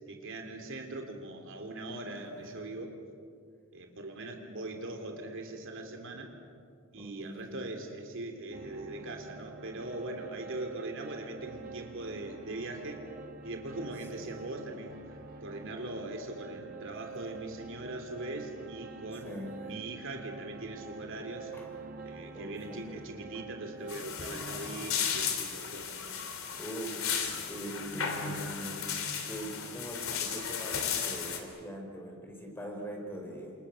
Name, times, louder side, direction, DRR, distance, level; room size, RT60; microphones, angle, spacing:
voice 1, 0.1-2.9 3.7-6.3 6.9-13.1 13.4-15.0 15.4-21.5 22.0-25.9, right 2 dB, 65° right, 4 dB, 3.1 m, -41 dB
voice 2, 2.1-2.5 7.0-7.5 7.7-7.8 14.1-14.3 19.2-19.7 21.5-21.7 22.0-23.0 23.3-23.4 26.6-28.8 29.2-33.5, right 1 dB, 10° left, 1 dB, 5.3 m, -42 dB
sound 1, 8.5-24.0, right 4 dB, 45° right, 2.0 m, -47 dB
sound 2, 23.9-31.4, left 7 dB, 70° left, 3.5 m, -35 dB
29.5 x 28.0 x 6.5 m, 2.2 s
head